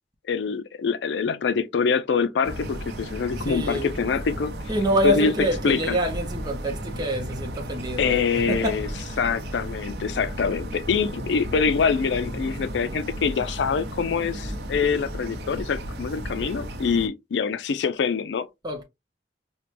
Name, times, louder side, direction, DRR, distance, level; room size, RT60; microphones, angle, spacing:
voice 1, 0.3-4.5 5.0-5.3 5.6-6.0 8.0-8.9 9.2-18.5, left 5 dB, 85° left, 0.4 m, -25 dB
sound 1, 2.4-17.1, equal, 65° right, 0.7 m, -34 dB
voice 2, 3.4-3.9 4.7-9.2 18.6-18.8, right 1 dB, 25° right, 0.7 m, -26 dB
4.4 x 2.2 x 2.5 m
head